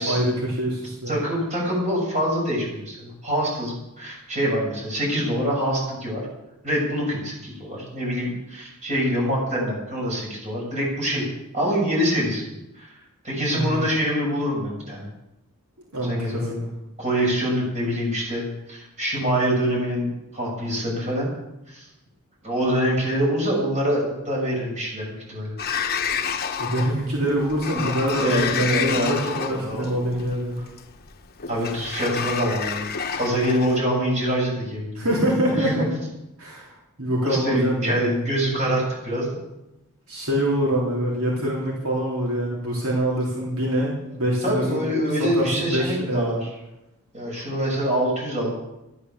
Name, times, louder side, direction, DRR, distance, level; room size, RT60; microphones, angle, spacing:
voice 1, 0.0-1.1 13.5-13.8 15.9-16.7 26.6-30.6 35.0-35.9 36.4-38.2 40.1-46.4, equal, 70° right, -3 dB, 3.7 m, -25 dB
voice 2, 1.1-6.2 6.6-11.2 11.5-12.9 13.2-15.1 16.1-16.6 17.0-21.3 21.7-21.9 22.4-25.6 27.7-27.9 28.2-29.9 30.2-30.7 31.5-32.9 33.1-35.9 37.2-39.3 44.4-46.4 47.1-48.5, equal, 30° right, -3 dB, 7.1 m, -25 dB
Sliding door, 25.6-33.8, left 6 dB, 45° left, 1.0 m, -29 dB
14.0 x 11.5 x 7.1 m, 0.92 s
head